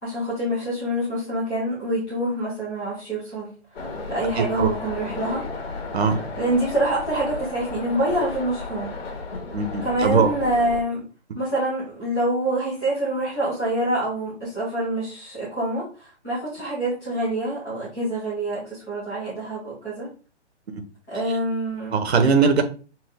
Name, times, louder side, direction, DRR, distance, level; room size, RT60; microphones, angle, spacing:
voice 1, 0.0-3.5 3.8-5.4 6.4-9.0 9.8-11.0 11.3-20.1 21.1-21.9, right 1 dB, ahead, -10 dB, 0.3 m, -26 dB
sound 1, 3.7-10.8, left 3 dB, 55° left, 1.5 m, -34 dB
voice 2, 4.4-4.7 5.9-6.2 9.5-10.3 20.7-20.8 21.9-22.6, right 5 dB, 65° right, 8 dB, 1.0 m, -20 dB
5.7 x 2.5 x 3.5 m, 0.37 s
figure-of-eight pair, 130°, 35 cm